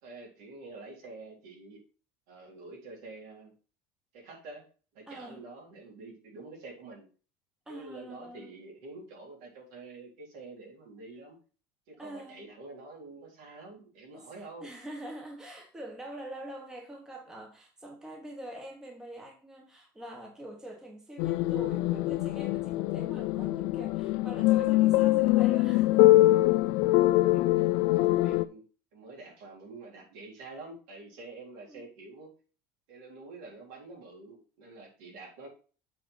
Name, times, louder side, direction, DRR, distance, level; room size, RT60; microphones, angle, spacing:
voice 1, 0.0-1.8 2.3-3.5 4.1-4.6 4.9-7.1 7.7-11.4 11.9-14.7 27.3-27.6 27.9-28.6 28.9-32.3 32.9-35.5, right 3 dB, 70° right, 3.8 m, -47 dB
voice 2, 5.1-5.4 7.7-8.5 12.0-12.5 14.1-26.2 27.6-27.7 31.7-31.8, right 1 dB, 5° right, 1.1 m, -44 dB
sound 1, 21.2-28.4, left 17 dB, 55° left, 0.3 m, -24 dB
7.5 x 4.2 x 5.5 m
cardioid pair, 170°, 8 cm